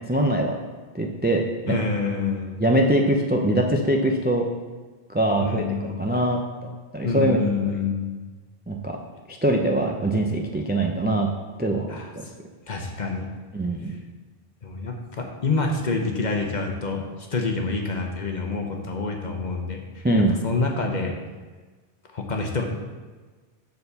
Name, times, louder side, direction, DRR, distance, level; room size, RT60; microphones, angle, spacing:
voice 1, 0.1-0.6 0.9-1.4 1.7-1.8 2.6-4.5 5.1-7.8 8.7-9.0 9.3-11.3 11.6-12.0 13.5-14.0 20.0-20.4, right 1 dB, 15° right, 2 dB, 0.4 m, -23 dB
voice 2, 1.6-2.6 5.4-6.1 7.0-8.2 11.9-12.1 12.7-13.3 13.9-14.0 14.6-20.1 20.4-21.2 22.1-22.7, left 3 dB, 45° left, 2 dB, 0.9 m, -27 dB
7.0 x 4.2 x 6.7 m, 1.3 s
omnidirectional pair, 1.1 m